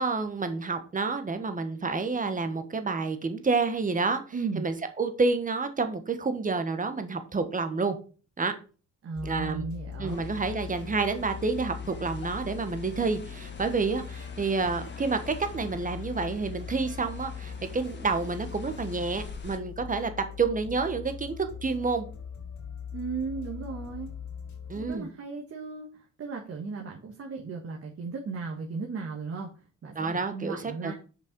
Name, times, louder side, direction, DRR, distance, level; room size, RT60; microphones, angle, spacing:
voice 1, 0.0-4.2 4.5-8.0 8.4-8.5 9.2-9.7 10.0-20.1 20.4-22.1 24.7-25.1 29.9-30.9, right 4 dB, 25° right, 8 dB, 1.4 m, -29 dB
voice 2, 4.3-4.6 9.0-10.2 22.9-24.1 24.7-29.5 29.8-30.9, right 4 dB, 50° right, 0 dB, 1.6 m, -36 dB
sound 1, 9.2-25.0, left 7 dB, 70° left, 4.0 m, -41 dB
sound 2, 10.1-19.6, left 4 dB, 35° left, 1.8 m, -47 dB
6.8 x 5.5 x 5.3 m, 0.37 s
cardioid pair, 90°, 30 cm